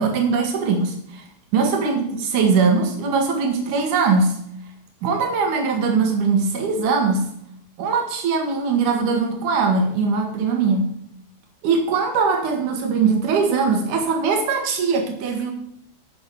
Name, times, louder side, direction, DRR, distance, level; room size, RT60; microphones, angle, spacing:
voice 1, 0.0-1.2 1.5-4.4 5.0-7.3 7.8-10.9 11.6-15.5, right 4 dB, 60° right, 3 dB, 3.0 m, -21 dB
9.7 x 8.1 x 6.8 m, 0.73 s
omnidirectional pair, 4.4 m